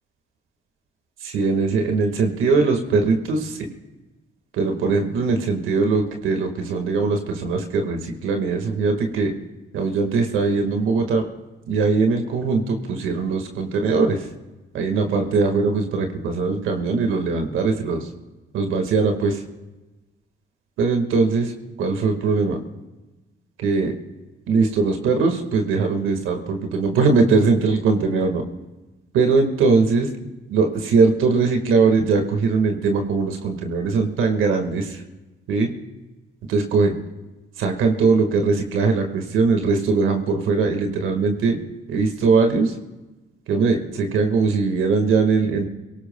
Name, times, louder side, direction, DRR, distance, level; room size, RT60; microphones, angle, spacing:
voice 1, 1.2-3.7 4.5-9.3 9.7-11.2 11.7-14.2 14.7-18.1 18.5-19.4 20.8-21.5 21.8-22.6 23.6-23.9 24.5-28.4 29.2-30.1 30.5-35.0 35.5-35.7 36.5-36.9 37.6-41.6 41.9-42.7 43.5-45.7, right 4 dB, 85° right, 4 dB, 1.8 m, -20 dB
29.0 x 18.0 x 2.3 m, 1.1 s
cardioid pair, 90°, 20 cm